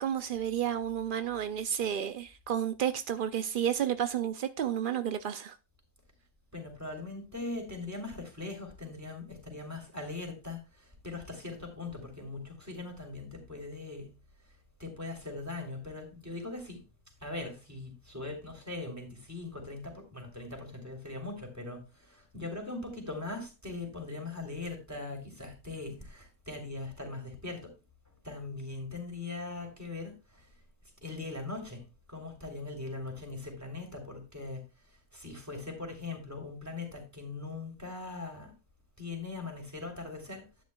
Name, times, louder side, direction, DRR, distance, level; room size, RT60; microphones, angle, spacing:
voice 1, 0.0-5.6, right 9 dB, 70° right, 0.5 m, -31 dB
voice 2, 6.5-10.6 11.0-14.1 14.8-16.8 17.2-21.8 22.1-27.6 28.2-30.1 31.0-31.8 32.1-34.6 35.1-38.5 39.0-40.4, left 3 dB, 10° right, 3.3 m, -40 dB
12.5 x 9.7 x 2.3 m
omnidirectional pair, 1.6 m